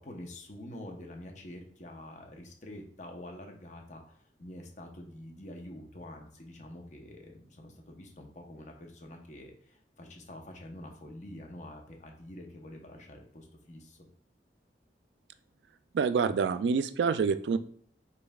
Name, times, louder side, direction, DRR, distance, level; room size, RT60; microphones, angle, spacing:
voice 1, 0.0-14.0, left 1 dB, 45° left, 2 dB, 0.8 m, -47 dB
voice 2, 15.9-17.6, right 5 dB, 80° right, 12 dB, 0.3 m, -27 dB
5.4 x 3.9 x 2.3 m, 0.62 s
head